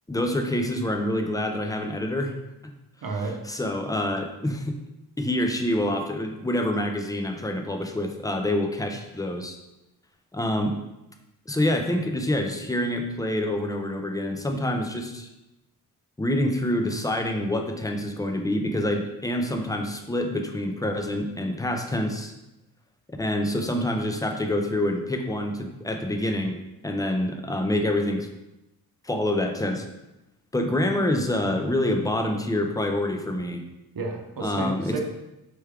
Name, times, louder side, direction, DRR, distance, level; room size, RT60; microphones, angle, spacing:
voice 1, 0.1-2.3 2.6-2.7 3.5-4.8 5.2-9.6 10.3-10.8 11.5-15.3 16.2-22.3 23.2-26.6 26.8-28.3 29.0-29.9 30.5-33.6 34.4-35.0, left 1 dB, 10° left, 4 dB, 0.3 m, -26 dB
voice 2, 3.0-3.4 33.9-35.0, right 3 dB, 65° right, 2 dB, 0.7 m, -31 dB
4.5 x 3.4 x 3.4 m, 0.94 s
wide cardioid pair, 165°, 37 cm